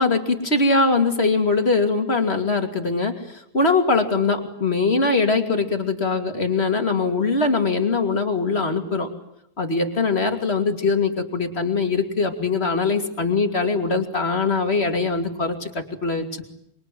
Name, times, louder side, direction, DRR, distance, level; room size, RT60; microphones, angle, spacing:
voice 1, 0.0-9.1 9.6-16.4, left 3 dB, 30° left, 5 dB, 2.8 m, -22 dB
26.5 x 23.5 x 9.3 m, 0.79 s
omnidirectional pair, 2.1 m